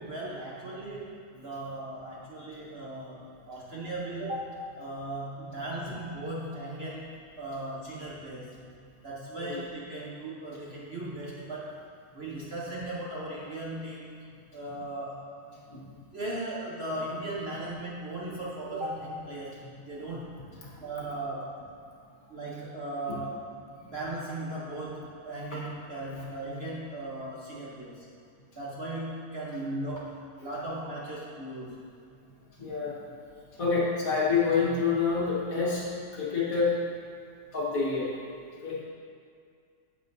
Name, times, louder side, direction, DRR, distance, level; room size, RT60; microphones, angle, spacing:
voice 1, 0.0-8.5 9.0-11.8 12.1-14.1 14.5-15.6 16.1-20.3 20.8-21.6 22.3-23.4 23.9-28.0 28.5-31.8 33.2-33.3, right 1 dB, 45° right, -6 dB, 1.0 m, -37 dB
voice 2, 32.6-33.0 33.6-36.8 37.5-38.1 38.6-38.8, left 5 dB, 55° left, -5 dB, 1.7 m, -27 dB
9.8 x 7.5 x 2.6 m, 2.3 s
omnidirectional pair, 1.8 m